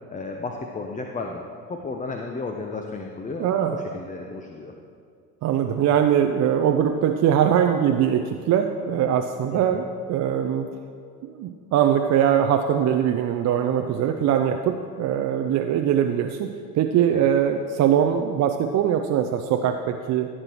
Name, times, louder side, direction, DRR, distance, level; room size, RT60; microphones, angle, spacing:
voice 1, 0.1-4.7 9.5-9.8 17.1-17.3, left 3 dB, 15° left, 3 dB, 0.7 m, -34 dB
voice 2, 3.4-3.8 5.4-9.8 10.1-10.7 11.2-16.5 16.8-20.3, right 9 dB, 35° right, 5 dB, 0.5 m, -22 dB
15.0 x 7.5 x 3.0 m, 2.2 s
hypercardioid pair, 65°, 48 cm